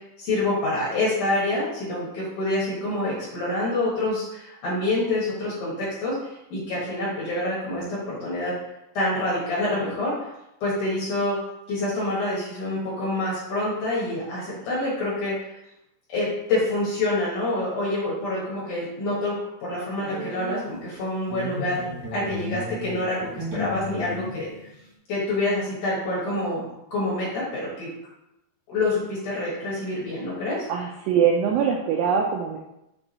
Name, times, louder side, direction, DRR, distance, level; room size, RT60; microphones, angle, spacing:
voice 1, 0.2-8.5 8.9-10.3 10.6-11.4 11.7-15.6 16.1-19.3 19.6-21.8 22.1-24.5 25.1-27.9 28.7-30.7, left 2 dB, 60° left, -7 dB, 2.3 m, -27 dB
sound 1, 20.0-21.0 21.3-24.8, left 2 dB, 60° right, 1.7 m, -35 dB
voice 2, 30.7-32.6, right 7 dB, 85° right, 1 dB, 2.4 m, -22 dB
6.8 x 3.6 x 4.1 m, 0.88 s
omnidirectional pair, 5.4 m